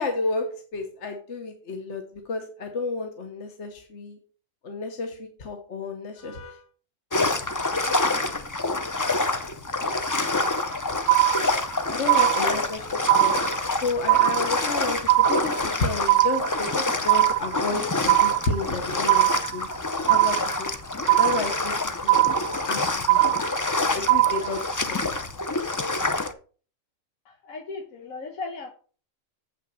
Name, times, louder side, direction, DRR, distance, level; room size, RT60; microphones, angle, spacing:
voice 1, 0.0-4.2 4.6-6.6 11.9-12.8 13.2-13.3 13.8-19.3 19.5-19.7 20.1-20.7 21.0-21.7 22.0-22.2 22.7-23.4 23.9-25.0, left 3 dB, 60° left, 5 dB, 1.3 m, -31 dB
sound 1, 7.1-26.3, left 2 dB, 25° left, 0.4 m, -27 dB
sound 2, 10.4-10.8 11.1-11.8 12.1-12.8 13.1-13.8 14.1-14.8 15.1-15.8 16.1-16.8 17.1-17.8 18.1-18.8 19.1-19.8 20.1-20.8 21.1-21.8 22.1-22.8 23.1-23.8 24.1-24.8, right 17 dB, 75° right, 0.9 m, -21 dB
voice 2, 12.3-12.8 27.2-28.7, left 3 dB, 85° left, 3 dB, 1.6 m, -36 dB
7.9 x 5.9 x 5.5 m, 0.39 s
omnidirectional pair, 1.4 m